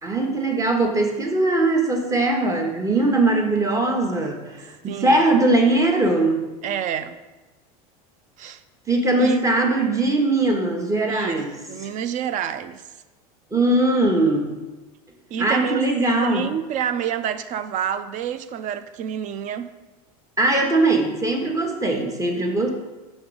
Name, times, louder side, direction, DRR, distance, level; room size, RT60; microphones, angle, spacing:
voice 1, 0.0-6.4 8.9-11.5 11.8-11.9 13.5-14.6 15.4-16.4 20.4-22.7, right 2 dB, 15° right, 1.0 m, -20 dB
voice 2, 4.9-5.4 6.6-7.2 8.4-8.6 9.2-9.5 11.1-11.4 11.7-12.8 15.3-15.8 16.2-19.7, right 9 dB, 40° right, 0.4 m, -28 dB
6.2 x 3.6 x 4.7 m
hypercardioid pair, 100°, 19 cm